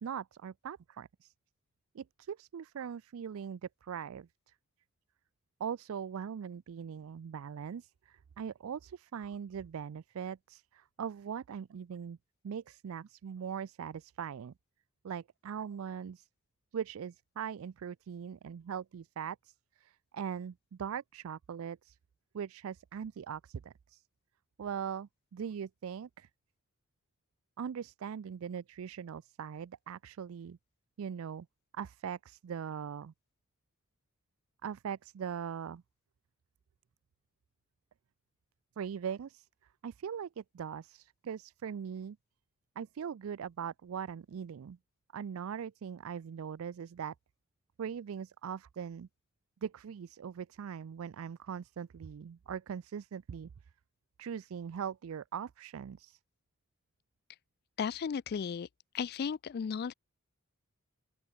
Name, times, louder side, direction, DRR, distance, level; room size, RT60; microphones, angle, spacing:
voice 1, 0.0-1.3 1.9-4.3 5.6-12.2 12.4-14.5 15.0-16.3 16.7-22.0 22.3-24.0 24.6-26.3 27.6-30.6 31.0-31.5 31.7-33.1 34.6-35.8 38.8-39.5 39.8-42.2 42.8-44.8 45.1-47.1 47.8-49.1 49.6-53.5 54.2-56.2, right 7 dB, 70° right, 0.4 m, -41 dB
voice 2, 57.8-58.7 58.9-59.9, left 6 dB, 45° left, 0.3 m, -35 dB
open air
head